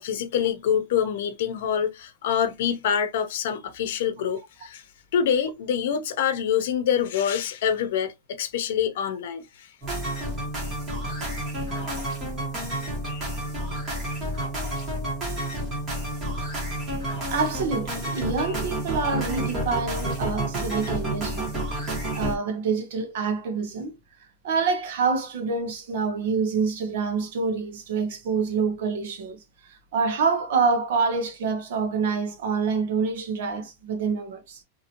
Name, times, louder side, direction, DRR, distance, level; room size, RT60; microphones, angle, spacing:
voice 1, 0.0-4.8 5.1-9.7, left 8 dB, 60° left, 0.7 m, -26 dB
sound 1, 9.8-22.4, right 1 dB, 15° right, 1.4 m, -30 dB
voice 2, 17.3-21.5 22.1-23.9 24.4-34.6, right 5 dB, 55° right, 1.0 m, -26 dB
2.9 x 2.7 x 2.8 m
supercardioid pair, 175°, 0 cm